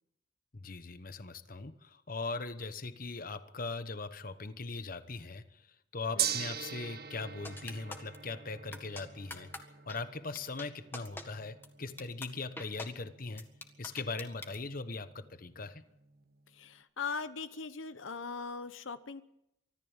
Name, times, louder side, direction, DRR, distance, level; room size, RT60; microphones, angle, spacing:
voice 1, 0.5-5.7 5.9-9.5 9.9-13.5 13.8-15.9, left 3 dB, 45° left, 12 dB, 1.1 m, -40 dB
Gong, 6.2-16.4, right 10 dB, 50° right, 1.4 m, -43 dB
sound 1, 7.4-8.2 8.7-9.0 9.3-9.6 9.9-10.0 10.3-10.7 10.9-11.2 11.6-11.7 12.0-12.3 12.6-12.9 13.4-14.6, left 2 dB, 10° left, 1.7 m, -43 dB
voice 2, 16.5-19.2, left 5 dB, 85° left, 12 dB, 0.9 m, -40 dB
24.5 x 14.5 x 7.3 m, 0.82 s
head